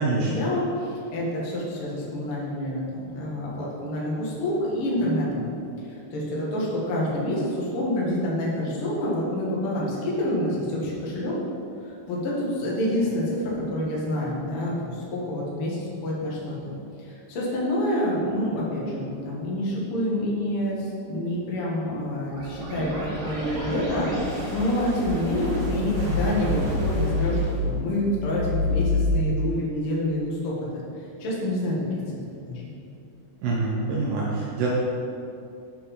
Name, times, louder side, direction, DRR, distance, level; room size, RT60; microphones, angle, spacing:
voice 1, 0.0-5.5 5.8-11.3 11.8-16.6 17.0-30.8 31.2-32.0 32.4-32.7, left 1 dB, 65° left, -5 dB, 1.4 m, -27 dB
sound 1, 22.2-29.1, left 2 dB, 55° right, 3.5 m, -28 dB
voice 2, 33.4-34.7, right 3 dB, 85° right, -5 dB, 2.0 m, -25 dB
8.1 x 7.5 x 5.4 m, 2.7 s
omnidirectional pair, 5.8 m